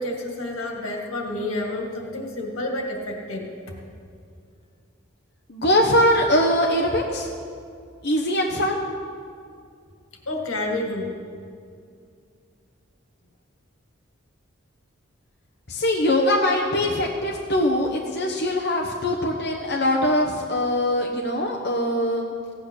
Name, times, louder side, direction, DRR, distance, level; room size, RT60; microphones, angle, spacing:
voice 1, 0.0-3.5 10.3-11.1, left 1 dB, 85° left, 1 dB, 2.1 m, -29 dB
voice 2, 5.5-7.3 8.0-8.8 15.7-22.3, left 1 dB, 50° left, 0 dB, 1.0 m, -22 dB
16.0 x 8.9 x 6.4 m, 2.3 s
head